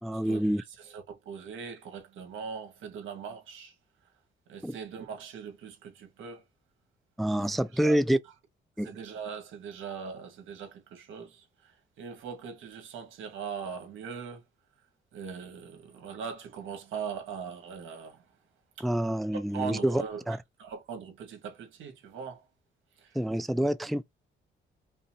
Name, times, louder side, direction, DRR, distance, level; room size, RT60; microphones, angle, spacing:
voice 1, 0.0-0.6 4.6-4.8 7.2-8.2 8.8-8.9 18.8-20.4 23.1-24.0, right 1 dB, ahead, 0.4 m, -27 dB
voice 2, 0.8-3.7 4.5-6.4 7.4-8.0 8.8-11.7 12.0-14.4 15.1-18.2 18.8-18.9 19.3-20.2 20.6-22.4 23.0-23.2, right 6 dB, 85° right, 1.7 m, -40 dB
5.4 x 2.0 x 3.0 m
cardioid pair, 90°, 20 cm